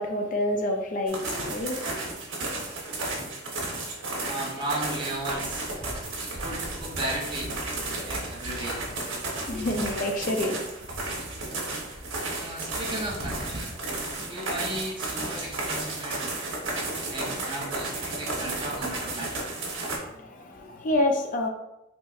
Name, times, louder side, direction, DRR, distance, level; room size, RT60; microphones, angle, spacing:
voice 1, 0.0-1.9 9.5-10.6 20.1-21.5, left 1 dB, 45° left, 0.4 m, -28 dB
sound 1, 1.1-20.0, right 2 dB, 85° right, 0.9 m, -33 dB
voice 2, 4.3-5.7 6.3-7.5 8.0-8.8 11.4-11.5 12.3-13.7 14.2-16.2 17.1-19.6, right 1 dB, 25° right, 0.8 m, -35 dB
3.9 x 2.9 x 2.4 m
head